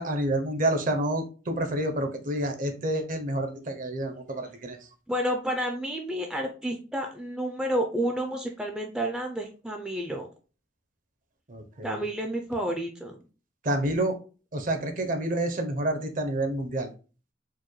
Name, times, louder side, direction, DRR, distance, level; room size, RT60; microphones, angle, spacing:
voice 1, 0.0-4.8 11.5-12.0 13.6-14.1 14.5-16.9, right 1 dB, 45° right, 6 dB, 0.6 m, -28 dB
voice 2, 5.1-10.3 11.8-13.2, equal, 5° right, 2 dB, 0.4 m, -30 dB
4.6 x 2.1 x 3.1 m, 0.35 s
head